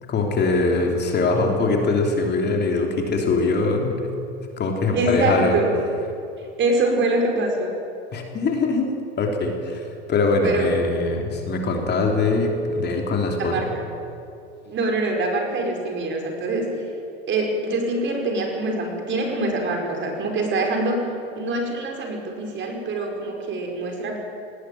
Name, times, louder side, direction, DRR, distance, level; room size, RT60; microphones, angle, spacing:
voice 1, 0.1-4.1 4.6-5.6 8.1-8.9 9.2-13.7, left 3 dB, 30° left, 2 dB, 3.3 m, -22 dB
voice 2, 4.9-5.7 6.6-7.7 10.4-10.7 13.4-13.6 14.7-16.7 17.3-21.1 21.3-24.2, right 2 dB, 35° right, 2 dB, 5.1 m, -24 dB
19.0 x 16.5 x 9.2 m, 2.7 s
supercardioid pair, 120°, 32 cm